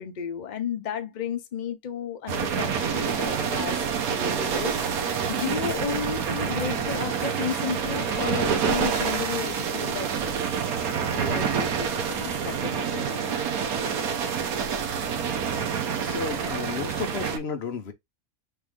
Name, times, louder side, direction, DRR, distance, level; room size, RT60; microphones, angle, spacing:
voice 1, 0.0-10.4 11.1-13.4, left 7 dB, 80° left, 0.4 m, -33 dB
sound 1, 2.3-17.4, right 7 dB, 70° right, 1.2 m, -27 dB
sound 2, 4.5-10.3, right 5 dB, 45° right, 0.5 m, -44 dB
voice 2, 16.0-17.9, left 6 dB, 50° left, 0.9 m, -32 dB
3.4 x 3.1 x 3.5 m
omnidirectional pair, 1.7 m